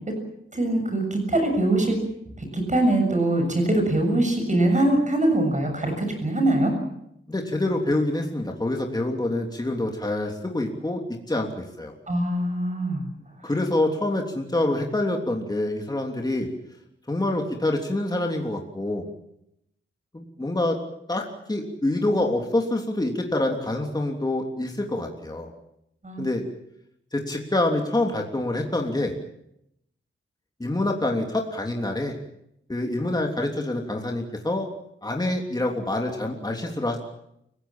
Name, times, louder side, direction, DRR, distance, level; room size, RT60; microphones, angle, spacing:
voice 1, 0.5-2.0 2.5-6.7 12.1-13.0 26.0-26.2, right 1 dB, 35° right, 4 dB, 7.0 m, -22 dB
voice 2, 7.3-11.0 11.3-11.9 13.4-16.5 17.1-19.1 20.1-20.8 21.1-21.2 21.5-25.5 26.2-26.4 27.1-29.2 30.6-32.1 32.7-34.7 35.0-37.0, left 1 dB, 20° left, 1 dB, 3.2 m, -26 dB
30.0 x 17.5 x 7.4 m, 0.78 s
wide cardioid pair, 95°, 21 cm